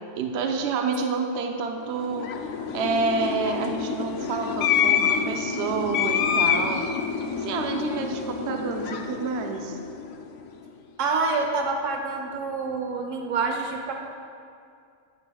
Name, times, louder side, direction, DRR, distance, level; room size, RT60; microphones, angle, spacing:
voice 1, 0.1-2.3 2.7-6.9 7.4-9.8, right 4 dB, 65° right, 3 dB, 0.9 m, -28 dB
sound 1, 1.9-10.4, left 7 dB, 75° left, 0.9 m, -27 dB
voice 2, 11.0-13.9, right 4 dB, 85° right, 3 dB, 1.1 m, -27 dB
10.5 x 9.6 x 2.3 m, 2.3 s
omnidirectional pair, 1.3 m